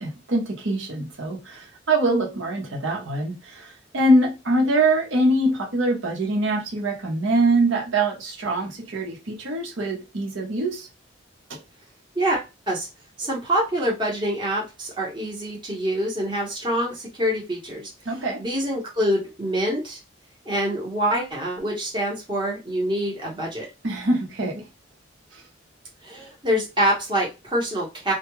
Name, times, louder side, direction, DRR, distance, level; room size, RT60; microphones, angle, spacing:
voice 1, 0.0-10.9 11.5-11.6 18.0-18.4 23.8-24.6 25.3-25.4, right 1 dB, 85° right, 0.9 m, -23 dB
voice 2, 12.1-12.9 13.2-17.9 18.4-20.0 20.4-23.7 26.0-28.1, equal, 25° right, 1.0 m, -25 dB
2.3 x 2.2 x 3.0 m
head